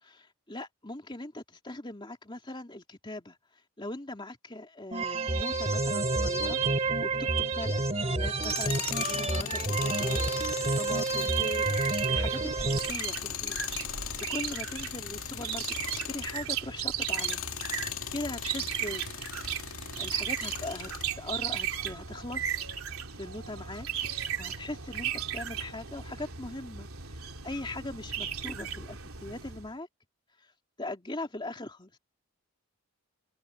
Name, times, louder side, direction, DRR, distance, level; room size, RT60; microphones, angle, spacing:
voice 1, 0.0-3.4 3.8-11.7 12.1-13.6 14.3-17.4 18.1-19.0 20.0-22.5 23.1-23.9 24.4-26.9 27.4-29.9 30.8-32.0, left 2 dB, 20° left, 2.6 m, -40 dB
sound 1, 4.9-12.9, right 3 dB, 30° right, 2.6 m, -29 dB
Tools, 8.3-16.5 16.9-21.2, left 10 dB, 75° left, 2.3 m, -38 dB
sound 2, 11.7-29.7, right 8 dB, 80° right, 3.5 m, -36 dB
head